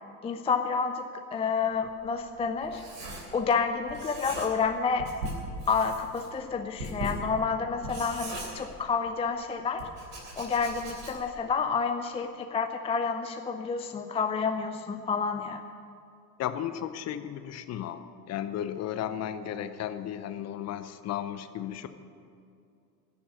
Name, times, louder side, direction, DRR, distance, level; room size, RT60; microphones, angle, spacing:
voice 1, 0.2-1.0 1.3-2.8 3.3-5.1 5.7-9.9 10.4-15.6, left 5 dB, 15° left, 6 dB, 0.5 m, -29 dB
Writing, 1.7-3.6 3.9-4.7 5.0-9.2 9.8-11.4, right 1 dB, 70° right, 3.3 m, -39 dB
voice 2, 16.4-21.9, left 10 dB, 35° left, 11 dB, 0.9 m, -34 dB
16.0 x 7.1 x 9.7 m, 2.5 s
figure-of-eight pair, 70°, 47 cm